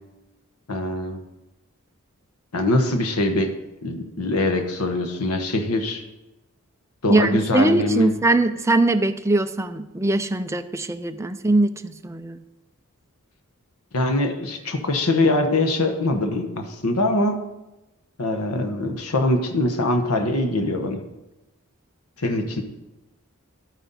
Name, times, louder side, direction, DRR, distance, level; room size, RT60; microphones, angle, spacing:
voice 1, 0.7-1.2 2.5-3.5 3.8-6.0 7.0-8.1 13.9-17.4 18.2-21.0 22.2-22.6, left 2 dB, 80° left, 6 dB, 1.1 m, -23 dB
voice 2, 7.1-12.4, right 2 dB, 15° right, 8 dB, 0.4 m, -21 dB
11.5 x 9.2 x 4.1 m, 1.0 s
head